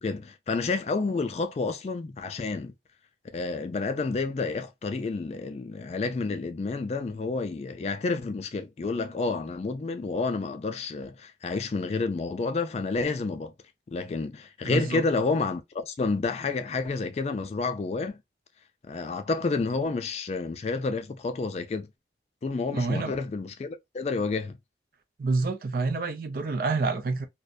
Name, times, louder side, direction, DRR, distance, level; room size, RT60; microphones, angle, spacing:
voice 1, 0.0-2.7 3.3-13.5 13.9-18.2 18.9-21.9 22.4-24.6, left 3 dB, 35° left, 0.3 m, -30 dB
voice 2, 14.6-15.0 22.7-23.2 25.2-27.2, right 3 dB, 55° right, 0.4 m, -28 dB
2.6 x 2.1 x 2.2 m
head